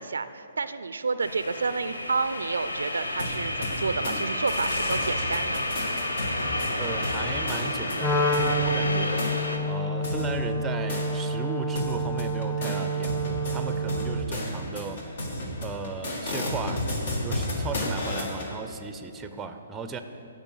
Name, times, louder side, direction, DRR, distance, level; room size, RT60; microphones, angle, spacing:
voice 1, 0.0-5.7 13.9-14.2, right 4 dB, 75° right, 13 dB, 0.4 m, -30 dB
sound 1, 1.2-9.6, left 1 dB, 85° left, 1.0 m, -31 dB
sound 2, 3.2-4.2 4.5-8.5 9.2-9.3 10.0-11.4 11.8-18.5, left 1 dB, 55° left, 1.9 m, -33 dB
voice 2, 6.8-9.3 9.7-15.0 15.6-16.8 17.2-20.0, right 4 dB, 10° right, 8 dB, 0.6 m, -36 dB
Wind instrument woodwind instrument, 8.0-14.4, right 1 dB, 15° left, 1.2 m, -28 dB
16.0 x 5.4 x 5.6 m, 3.0 s
figure-of-eight pair, 130°, 0 cm